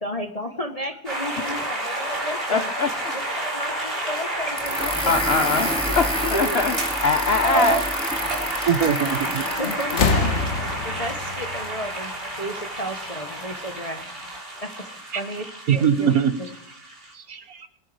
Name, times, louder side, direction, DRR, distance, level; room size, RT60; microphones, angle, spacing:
voice 1, 0.0-2.7 3.1-5.2 6.3-6.6 9.6-10.2 10.8-14.0 14.6-14.9 15.1-15.5 15.7-16.1 16.4-16.5, equal, 30° left, 5 dB, 0.8 m, -33 dB
sound 1, 1.1-17.1, right 1 dB, 30° right, 3.8 m, -30 dB
voice 2, 2.5-3.2 4.8-6.7 7.0-8.7 9.6-10.3, left 4 dB, 60° left, 9 dB, 0.6 m, -25 dB
sound 2, 4.6-10.2, equal, 5° left, 2.1 m, -29 dB
voice 3, 7.4-7.8 8.7-9.5 15.7-16.3 17.1-17.7, right 6 dB, 55° right, 10 dB, 1.2 m, -21 dB
sound 3, 9.2-9.5 9.9-12.6 13.7-13.8, left 4 dB, 45° left, 1.2 m, -26 dB
24.0 x 10.0 x 3.3 m, 0.72 s
omnidirectional pair, 2.1 m